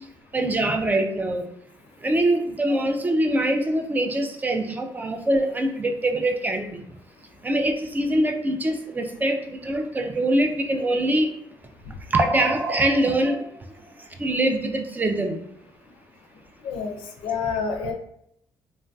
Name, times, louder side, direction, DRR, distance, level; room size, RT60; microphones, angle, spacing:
voice 1, 0.3-1.4 2.0-6.9 7.4-11.3 12.1-13.4 14.2-15.4, right 1 dB, 20° right, 5 dB, 0.3 m, -23 dB
voice 2, 16.6-17.0 17.2-17.9, left 5 dB, 85° left, 4 dB, 0.4 m, -28 dB
3.0 x 2.5 x 2.2 m, 0.74 s
cardioid pair, 105°, 9 cm